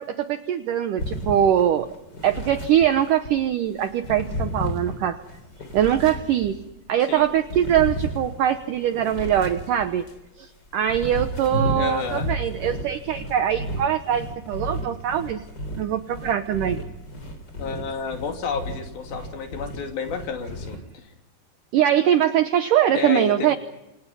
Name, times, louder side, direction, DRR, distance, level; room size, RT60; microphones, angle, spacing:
voice 1, 0.0-1.9 2.2-5.2 5.7-6.6 6.9-10.1 10.4-15.4 15.8-16.8 21.7-23.6, right 10 dB, 75° right, 9 dB, 2.0 m, -22 dB
sound 1, 1.0-3.4 3.8-6.7 7.2-10.2 10.7-20.8, equal, 25° left, 3.9 m, -33 dB
voice 2, 11.7-12.3 17.6-21.0 22.9-23.6, left 5 dB, 60° left, 4 dB, 4.4 m, -30 dB
28.5 x 24.5 x 5.6 m, 0.93 s
omnidirectional pair, 5.0 m